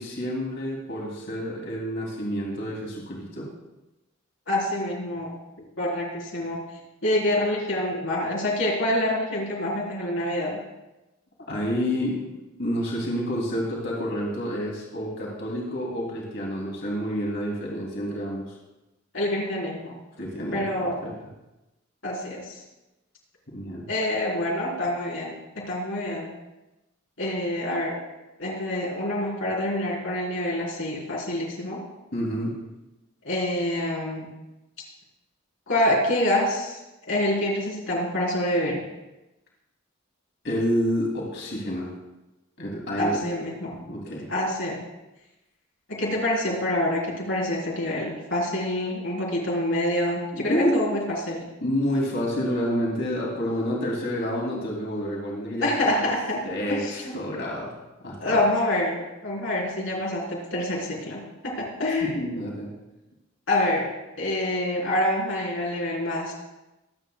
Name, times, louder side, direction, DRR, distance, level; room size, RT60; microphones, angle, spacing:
voice 1, 0.0-3.5 11.5-18.5 20.2-21.1 23.5-23.9 32.1-32.6 40.4-41.9 42.6-43.2 43.8-44.3 50.3-50.9 51.6-56.0 56.4-57.7 58.0-58.4 62.0-62.7, equal, 60° left, -3 dB, 3.1 m, -29 dB
voice 2, 4.5-5.3 5.8-6.6 7.0-10.6 19.1-19.9 20.5-21.0 22.0-22.6 23.9-26.3 27.2-28.0 28.4-31.8 33.2-34.3 35.7-36.8 37.1-38.8 43.0-43.7 44.3-44.8 45.9-51.5 55.6-57.0 58.2-62.2 63.5-63.9 64.2-66.3, left 1 dB, 75° left, -5 dB, 4.2 m, -26 dB
24.0 x 8.6 x 2.4 m, 1.0 s
head